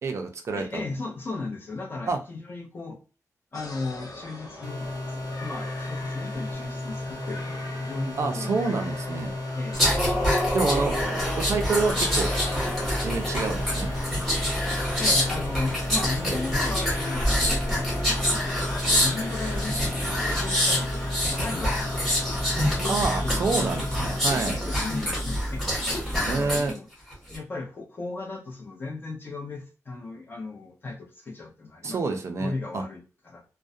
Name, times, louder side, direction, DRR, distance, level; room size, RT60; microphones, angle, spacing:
voice 1, 0.0-0.8 2.1-2.2 8.2-9.3 10.5-10.9 11.4-12.3 13.0-13.9 16.2-16.4 22.9-24.6 26.2-26.7 31.8-32.8, right 4 dB, 50° right, 4 dB, 0.4 m, -27 dB
voice 2, 0.6-3.0 3.5-4.9 5.4-8.6 9.5-10.0 15.0-21.0 21.3-22.0 22.8-23.6 24.3-25.9 26.2-26.9 27.3-32.0 32.4-33.4, left 3 dB, 35° left, 1 dB, 0.7 m, -36 dB
sound 1, 3.5-22.7, left 2 dB, 80° left, 0.5 m, -42 dB
sound 2, 4.6-24.2, left 2 dB, 65° left, 1.1 m, -34 dB
sound 3, 9.7-26.7 27.1-27.4, equal, ahead, 1.0 m, -26 dB
2.3 x 2.1 x 2.5 m, 0.34 s
wide cardioid pair, 160°, 6 cm